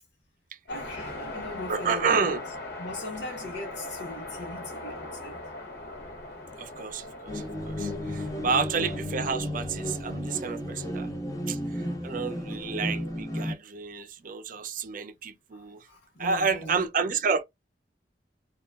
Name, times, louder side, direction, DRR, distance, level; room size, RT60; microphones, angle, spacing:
voice 1, 0.7-2.4 2.8-5.4 8.0-8.7 15.5-16.8, left 2 dB, 80° left, 1.2 m, -40 dB
sound 1, 0.7-9.0, left 2 dB, 60° left, 0.8 m, -40 dB
voice 2, 1.7-2.5 6.6-11.1 11.5-15.9 16.2-17.4, right 5 dB, 50° right, 0.5 m, -30 dB
sound 2, 7.3-13.5, left 1 dB, 20° left, 0.6 m, -33 dB
2.9 x 2.3 x 2.3 m
head